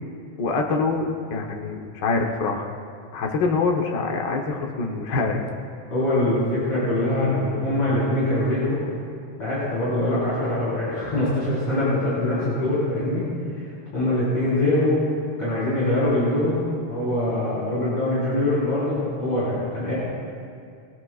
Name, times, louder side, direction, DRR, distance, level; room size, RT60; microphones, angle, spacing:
voice 1, 0.4-2.7 3.1-5.5, left 4 dB, 90° left, 1 dB, 0.9 m, -25 dB
voice 2, 5.9-8.8 9.4-13.3 13.9-15.0 15.4-19.9, left 1 dB, 50° left, -11 dB, 5.5 m, -23 dB
21.0 x 19.5 x 2.4 m, 2.3 s
omnidirectional pair, 3.6 m